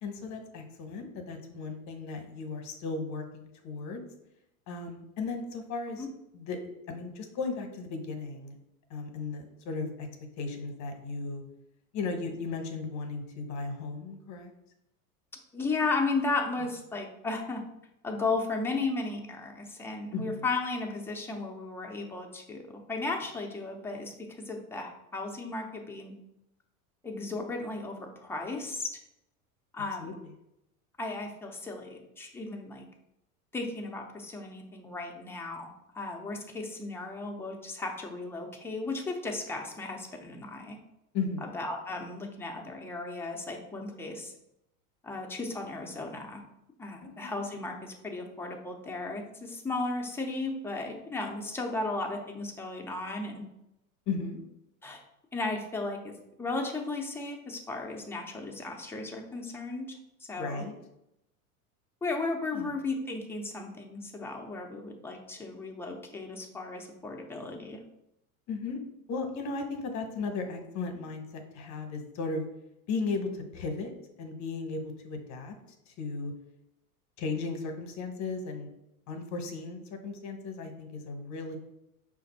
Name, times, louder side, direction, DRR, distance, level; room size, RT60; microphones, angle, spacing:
voice 1, 0.0-4.0 4.7-6.1 6.3-8.5 8.9-10.1 10.4-11.4 11.9-14.5 20.1-20.4 30.0-30.1 41.1-41.5 47.2-47.3 54.1-54.4 60.4-60.7 62.5-62.7 68.5-68.8 69.1-72.4 72.9-73.9 74.2-75.5 75.9-76.3 77.2-78.7 79.1-81.6, left 4 dB, 40° left, 5 dB, 0.9 m, -36 dB
voice 2, 15.5-17.6 18.0-26.1 27.0-28.9 29.7-30.2 31.0-32.9 33.5-40.8 41.4-44.3 45.0-46.4 46.8-53.4 54.8-55.0 55.3-60.0 60.3-60.6 62.0-67.8, left 3 dB, 5° left, 1 dB, 0.5 m, -35 dB
5.1 x 2.5 x 4.1 m, 0.84 s
supercardioid pair, 115°, 43 cm